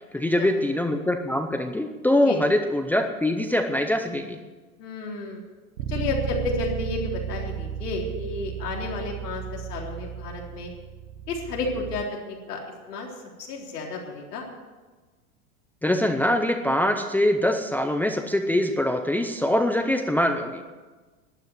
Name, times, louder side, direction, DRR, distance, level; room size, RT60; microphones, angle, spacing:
voice 1, 0.1-4.4 15.8-20.6, left 1 dB, 5° left, 5 dB, 0.6 m, -23 dB
voice 2, 4.8-5.4 5.9-10.7 11.3-12.6 12.9-13.1 13.4-14.5, left 3 dB, 90° left, -1 dB, 3.9 m, -32 dB
Bass guitar, 5.8-12.0, right 8 dB, 60° right, 1.2 m, -34 dB
12.0 x 9.6 x 9.2 m, 1.3 s
supercardioid pair, 130°, 45 cm